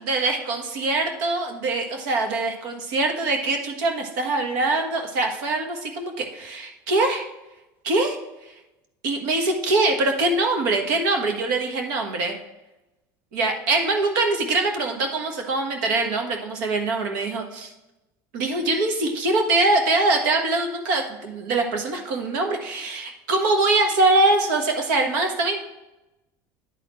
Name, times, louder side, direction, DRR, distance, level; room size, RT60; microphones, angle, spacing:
voice 1, 0.1-7.3 7.8-8.5 9.0-12.3 13.3-17.7 18.3-25.6, right 2 dB, 85° right, 3 dB, 1.4 m, -23 dB
10.0 x 4.3 x 4.4 m, 0.97 s
supercardioid pair, 120°, 10 cm